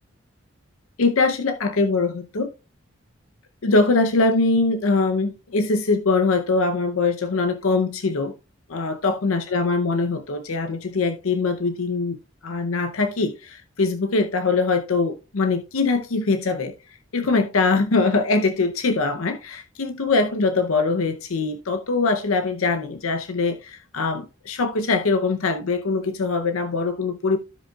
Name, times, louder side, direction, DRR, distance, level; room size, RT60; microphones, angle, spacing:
voice 1, 1.0-2.5 3.6-8.3 8.7-12.2 12.4-16.7 17.1-27.4, left 3 dB, 80° left, 0.7 m, -22 dB
15.0 x 5.1 x 2.3 m
head